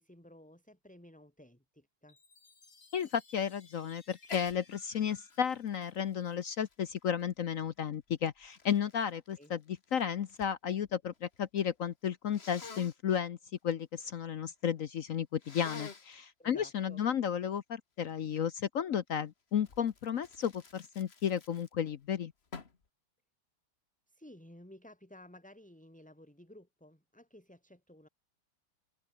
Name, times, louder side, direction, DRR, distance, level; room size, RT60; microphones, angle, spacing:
voice 1, 0.0-2.2 9.4-9.5 16.4-17.0 24.1-28.1, left 1 dB, 5° left, 4.8 m, -55 dB
Chime, 2.1-6.6, left 4 dB, 90° left, 5.4 m, -62 dB
voice 2, 2.9-9.6 9.9-13.4 13.6-22.3, left 8 dB, 60° left, 0.9 m, -33 dB
Sneeze, 4.2-4.6 5.0-7.4 8.1-10.5 10.8-11.5 12.3-13.0 15.4-16.1 19.6-21.9 22.5-22.8, left 4 dB, 30° left, 1.8 m, -49 dB
omnidirectional pair, 2.2 m